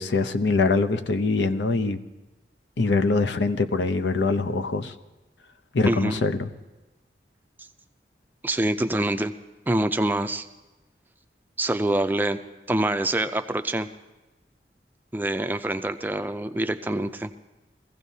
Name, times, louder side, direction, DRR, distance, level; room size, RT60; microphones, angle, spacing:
voice 1, 0.0-2.0 2.8-4.9 5.7-6.5, left 3 dB, 85° left, 9 dB, 0.6 m, -23 dB
voice 2, 5.9-6.2 8.4-9.3 9.7-10.5 11.6-12.4 12.7-13.9 15.1-17.3, right 1 dB, 10° right, 9 dB, 0.4 m, -25 dB
22.5 x 15.5 x 2.7 m, 1.1 s
head